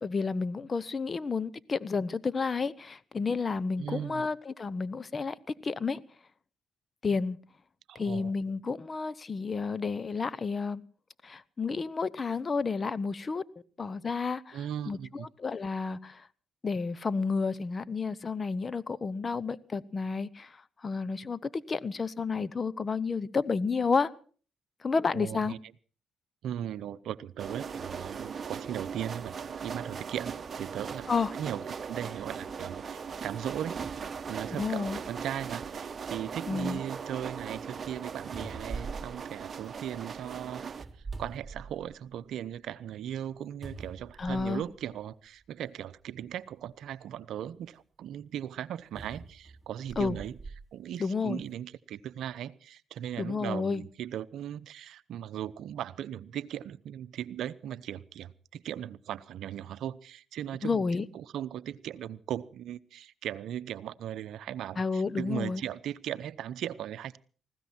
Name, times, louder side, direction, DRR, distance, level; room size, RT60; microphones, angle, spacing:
voice 1, 0.0-6.0 7.0-7.4 7.9-10.8 11.2-13.4 13.8-14.6 14.9-16.3 16.6-20.6 20.8-24.1 24.8-25.5 31.1-31.3 34.6-35.0 36.5-36.8 44.2-44.6 50.0-50.2 51.0-51.4 53.2-53.8 60.6-61.1 64.8-65.6, left 4 dB, 40° left, 0.9 m, -31 dB
voice 2, 3.8-4.2 7.9-8.3 14.5-15.3 25.1-25.6 26.4-31.1 31.4-33.8 34.3-40.7 41.2-50.4 50.7-60.8 61.1-67.2, right 10 dB, 70° right, 0.7 m, -38 dB
sound 1, 27.4-40.8, right 6 dB, 45° right, 1.0 m, -39 dB
sound 2, 38.3-40.0 40.7-42.1 42.6-42.7 43.6-44.7 45.7-45.8 48.9-50.6 51.3-51.4, right 3 dB, 20° right, 4.0 m, -43 dB
19.5 x 16.0 x 4.4 m
supercardioid pair, 60°, 0 cm